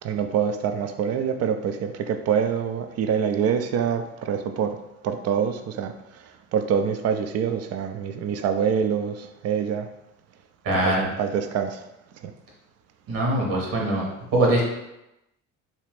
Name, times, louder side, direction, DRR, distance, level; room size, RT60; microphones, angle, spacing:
voice 1, 0.0-4.8 5.0-5.9 6.5-9.9 10.8-11.8 12.2-12.3, right 7 dB, 40° right, 8 dB, 0.4 m, -25 dB
voice 2, 10.6-11.1 13.1-14.1 14.3-14.6, right 1 dB, 55° right, -2 dB, 1.3 m, -22 dB
3.1 x 2.9 x 3.0 m, 0.91 s
hypercardioid pair, 55°, 40 cm